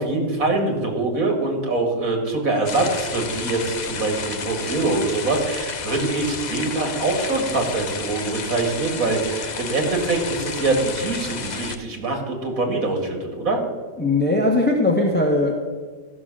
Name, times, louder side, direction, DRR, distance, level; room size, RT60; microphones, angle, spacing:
voice 1, 0.0-13.6, right 3 dB, 80° right, 2 dB, 2.6 m, -24 dB
sound 1, 2.6-11.8, left 5 dB, 40° left, 0.7 m, -31 dB
voice 2, 14.0-15.5, left 2 dB, 10° left, 1 dB, 1.0 m, -19 dB
13.5 x 6.3 x 6.2 m, 1.5 s
omnidirectional pair, 1.4 m